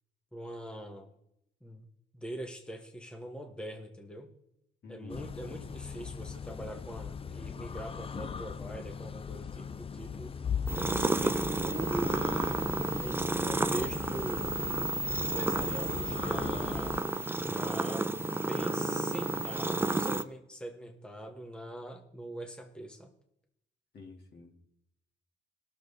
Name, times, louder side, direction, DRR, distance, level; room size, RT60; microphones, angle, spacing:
voice 1, 0.3-1.1 1.6-1.8 2.1-4.3 4.9-10.3 10.7-12.3 13.0-14.6 15.2-17.0 17.3-23.1, right 1 dB, 5° left, 4 dB, 1.2 m, -42 dB
voice 2, 4.8-5.3 23.9-24.6, left 3 dB, 55° left, 2 dB, 2.3 m, -48 dB
sound 1, 5.1-17.0, left 7 dB, 30° left, 0.5 m, -39 dB
sound 2, 10.7-20.2, right 2 dB, 10° right, 0.6 m, -31 dB
18.0 x 6.7 x 4.1 m, 0.80 s
cardioid pair, 90°, 20 cm